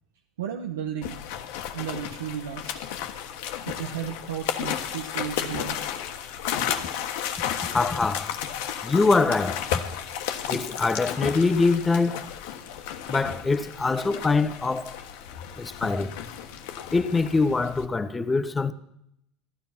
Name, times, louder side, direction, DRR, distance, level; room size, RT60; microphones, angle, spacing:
voice 1, 0.4-1.2 1.7-2.7 3.7-5.8, right 9 dB, 80° right, 1.1 m, -33 dB
sound 1, 1.0-17.9, left 9 dB, 70° left, 1.3 m, -33 dB
voice 2, 7.7-8.3 8.8-9.7 10.5-12.2 13.1-14.9 15.6-16.1 16.9-18.7, left 3 dB, 20° left, 1.1 m, -24 dB
15.5 x 12.5 x 5.8 m
hypercardioid pair, 80°, 0 cm